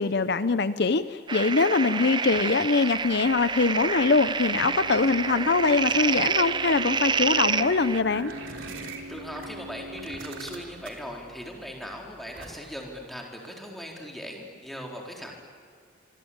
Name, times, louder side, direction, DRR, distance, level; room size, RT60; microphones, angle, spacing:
voice 1, 0.0-8.3, left 4 dB, 55° left, 13 dB, 0.6 m, -23 dB
sound 1, 1.3-8.0, right 5 dB, 25° right, 0.6 m, -28 dB
Organ, 2.9-13.0, right 1 dB, 65° right, 2.0 m, -44 dB
sound 2, 7.9-9.5 10.0-11.1 12.4-12.8, right 4 dB, 80° right, 3.7 m, -42 dB
voice 2, 9.1-15.3, equal, ahead, 0 dB, 4.1 m, -39 dB
26.0 x 25.0 x 8.8 m, 2.1 s
head